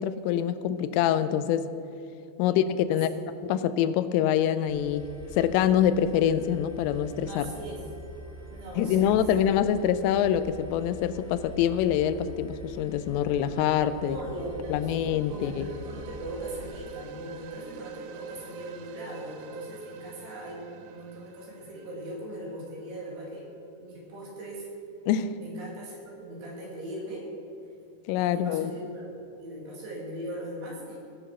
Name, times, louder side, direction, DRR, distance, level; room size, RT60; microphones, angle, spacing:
voice 1, 0.0-1.7 2.4-2.6 2.9-3.1 3.5-7.5 8.8-14.2 14.7-15.7 25.1-25.3 28.1-28.7, left 10 dB, 90° left, 12 dB, 3.1 m, -25 dB
voice 2, 2.9-3.2 7.3-7.8 8.5-9.4 14.0-14.9 15.3-23.5 23.8-24.7 25.4-27.3 28.2-29.0 29.4-31.0, right 1 dB, 60° right, -3 dB, 4.1 m, -39 dB
sound 1, 4.7-16.8, left 1 dB, 5° right, 1.2 m, -45 dB
sound 2, 14.2-23.1, right 6 dB, 85° right, 3.2 m, -47 dB
17.5 x 6.8 x 6.1 m, 2.6 s
omnidirectional pair, 5.7 m